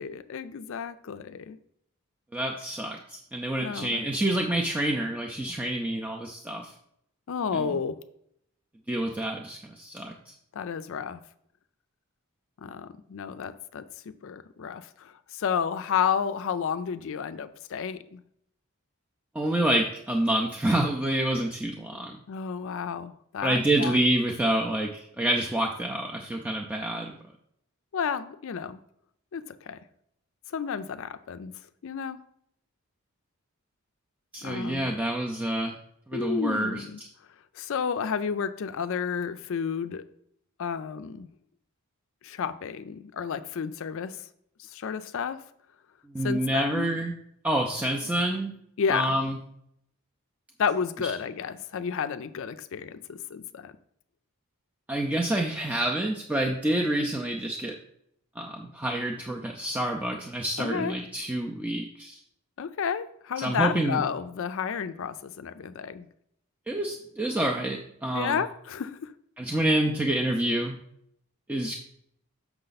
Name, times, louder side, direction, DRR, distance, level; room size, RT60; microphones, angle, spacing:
voice 1, 0.0-1.6 3.6-4.1 7.3-8.0 10.5-11.2 12.6-13.8 14.2-18.2 22.3-24.0 27.9-28.8 29.3-29.8 30.5-31.5 31.8-32.2 34.4-35.0 36.1-37.0 37.5-40.0 40.6-41.3 42.2-44.2 44.6-45.4 46.2-46.9 48.8-49.2 50.6-53.7 60.6-60.9 62.6-66.1 68.1-69.1, left 6 dB, 60° left, 12 dB, 0.4 m, -31 dB
voice 2, 2.3-6.7 7.5-7.8 8.9-10.3 19.3-22.2 23.4-27.2 34.3-35.8 36.1-36.8 46.1-47.1 47.4-48.5 48.9-49.3 54.9-57.7 58.4-62.2 63.4-64.0 66.7-68.4 69.4-70.8 71.5-71.7, right 1 dB, 5° right, 0 dB, 0.4 m, -28 dB
6.6 x 5.8 x 4.0 m, 0.72 s
head